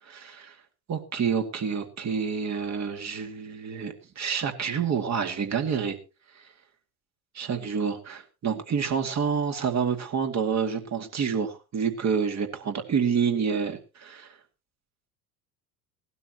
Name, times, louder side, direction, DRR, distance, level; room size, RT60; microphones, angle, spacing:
voice 1, 0.1-0.5 0.9-6.0 7.3-14.3, right 6 dB, 35° right, 6 dB, 2.2 m, -28 dB
18.0 x 12.5 x 3.0 m, 0.30 s
figure-of-eight pair, 70°, 49 cm